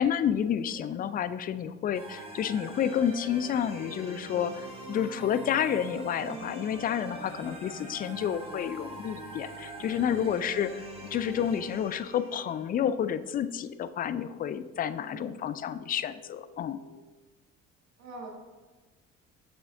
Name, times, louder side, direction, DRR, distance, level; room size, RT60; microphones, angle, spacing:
voice 1, 0.0-16.8, left 9 dB, 25° left, 13 dB, 0.4 m, -30 dB
sound 1, 1.9-12.7, right 2 dB, 15° right, 2.0 m, -43 dB
voice 2, 6.2-6.5 10.1-10.4 15.0-15.4 18.0-18.3, right 3 dB, 45° right, 0 dB, 1.6 m, -45 dB
sound 2, 7.0-17.0, left 3 dB, 85° left, 0.6 m, -55 dB
8.0 x 7.1 x 3.6 m, 1.3 s
figure-of-eight pair, 55°, 37 cm